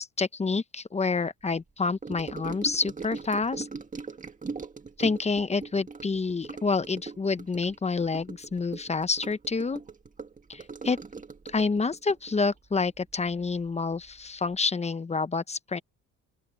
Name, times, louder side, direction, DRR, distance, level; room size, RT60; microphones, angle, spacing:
voice 1, 0.0-3.7 5.0-9.8 10.5-11.0 11.5-15.8, left 4 dB, 20° left, 0.9 m, -28 dB
Gurgling / Sink (filling or washing) / Trickle dribble, 2.0-13.7 13.9-14.3 14.5-14.6, right 4 dB, 25° right, 2.0 m, -41 dB
open air
cardioid pair, 90°, 31 cm